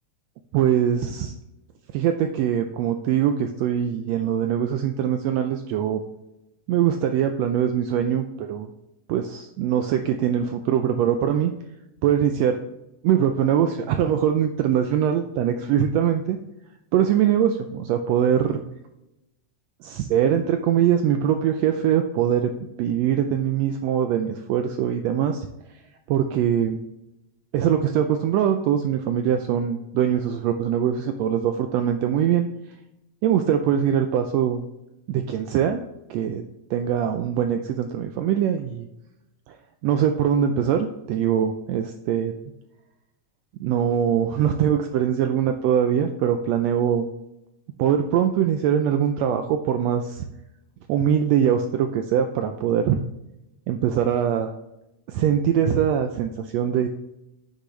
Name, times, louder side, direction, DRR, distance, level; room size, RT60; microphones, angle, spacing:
voice 1, 0.5-1.3 1.9-6.0 6.7-8.7 9.1-11.5 12.0-12.6 13.0-16.4 16.9-18.6 19.8-22.5 22.8-25.5 26.1-26.8 27.5-32.5 33.2-34.6 35.1-35.8 36.1-36.4 36.7-38.9 39.8-42.3 43.6-47.1 47.8-50.2 50.9-53.0 53.7-54.5 55.1-56.9, right 9 dB, 80° right, 6 dB, 1.5 m, -22 dB
7.8 x 6.4 x 3.2 m, 0.91 s
omnidirectional pair, 3.4 m